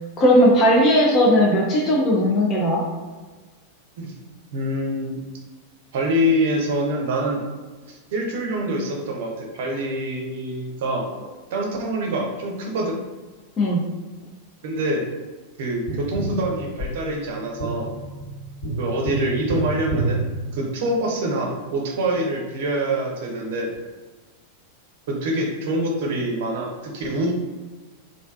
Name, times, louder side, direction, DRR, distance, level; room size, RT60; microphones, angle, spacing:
voice 1, 0.2-2.8 13.6-13.8, equal, 30° left, -3 dB, 0.5 m, -17 dB
voice 2, 4.5-5.2 5.9-7.4 7.9-11.1 11.5-13.0 14.6-15.1 15.6-17.9 18.8-20.3 20.5-23.7 25.1-27.3, right 1 dB, 55° right, 0 dB, 0.6 m, -25 dB
Tap, 15.9-21.2 23.8-23.9, right 2 dB, 60° left, 1.2 m, -29 dB
3.2 x 2.4 x 2.3 m, 1.3 s
figure-of-eight pair, 90°, 0 cm